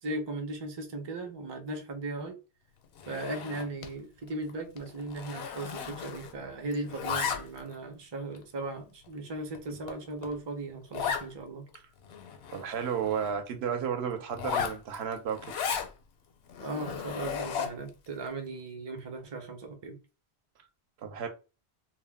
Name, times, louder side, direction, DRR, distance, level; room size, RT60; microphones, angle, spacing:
voice 1, 0.0-2.4 3.1-11.7 16.6-20.0, right 2 dB, 30° right, 0.5 m, -37 dB
Zipper (clothing), 3.0-4.0 4.3-4.5 4.8-6.5 6.7-7.7 8.3-8.4 9.0-9.1 9.5-9.6 9.9-10.0 10.2-10.3 10.9-11.3 11.7-11.8 12.0-13.3 14.3-15.9 16.5-17.9, left 7 dB, 75° left, 0.8 m, -35 dB
voice 2, 12.5-15.5 21.0-21.3, right 7 dB, 75° right, 0.8 m, -32 dB
2.2 x 2.1 x 3.3 m
omnidirectional pair, 1.1 m